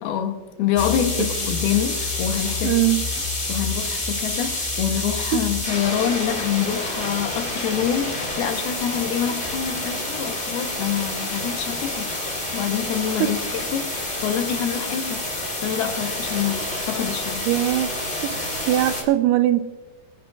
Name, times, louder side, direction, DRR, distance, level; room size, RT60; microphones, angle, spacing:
voice 1, 0.0-2.8 3.5-12.2 12.5-17.5, left 9 dB, 75° left, 2.7 m, -26 dB
sound 1, 0.8-19.0, left 2 dB, 25° left, 1.2 m, -28 dB
voice 2, 2.6-3.0 5.3-5.4 13.2-13.3 17.5-17.9 18.2-19.6, right 14 dB, 85° right, 2.7 m, -21 dB
22.5 x 10.5 x 2.4 m
omnidirectional pair, 4.8 m